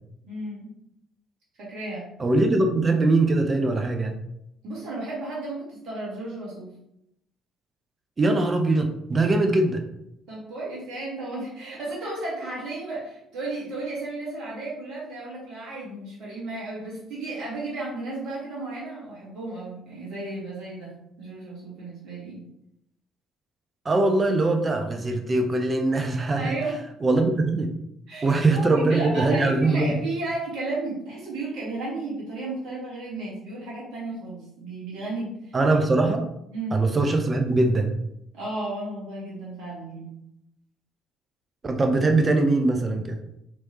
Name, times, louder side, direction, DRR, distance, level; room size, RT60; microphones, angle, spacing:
voice 1, 0.2-0.7 1.6-2.0 4.6-6.7 10.3-20.9 21.2-22.4 26.4-26.7 28.1-35.3 36.5-36.8 38.3-40.1, right 2 dB, 60° right, -6 dB, 1.4 m, -33 dB
voice 2, 2.2-4.2 8.2-9.8 23.8-26.5 27.0-27.7 28.2-30.0 35.5-36.3 36.7-37.9 41.6-43.2, right 2 dB, 30° right, 5 dB, 0.5 m, -22 dB
3.1 x 3.0 x 2.8 m, 0.79 s
figure-of-eight pair, 50°, 0 cm